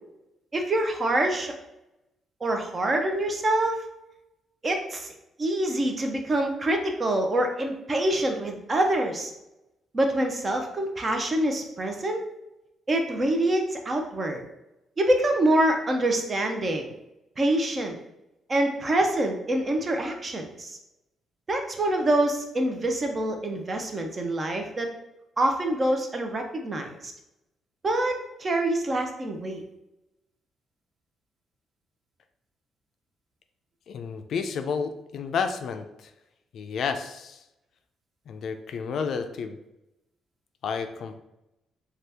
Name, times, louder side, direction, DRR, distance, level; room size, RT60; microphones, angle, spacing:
voice 1, 0.5-1.6 2.4-3.8 4.6-5.1 5.4-9.3 9.9-12.2 12.9-14.4 15.0-16.9 17.4-18.0 18.5-20.8 21.5-24.9 25.4-27.1 27.8-29.6, right 1 dB, 35° right, 4 dB, 0.6 m, -25 dB
voice 2, 33.9-36.1 36.5-37.4 38.3-39.6 40.6-41.2, left 6 dB, 65° left, 7 dB, 0.3 m, -31 dB
2.8 x 2.3 x 3.3 m, 0.89 s
cardioid pair, 90°, 0 cm